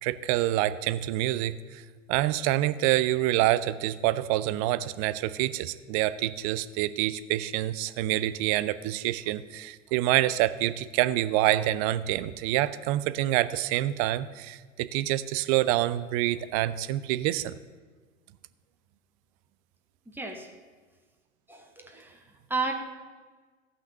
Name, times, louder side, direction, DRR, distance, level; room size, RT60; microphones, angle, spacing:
voice 1, 0.0-1.8 2.1-17.5, right 14 dB, 30° right, 14 dB, 0.4 m, -27 dB
voice 2, 20.1-20.5 21.5-22.2 22.5-22.7, right 3 dB, 5° right, 2 dB, 1.4 m, -33 dB
15.0 x 5.8 x 6.5 m, 1.4 s
figure-of-eight pair, 85°, 39 cm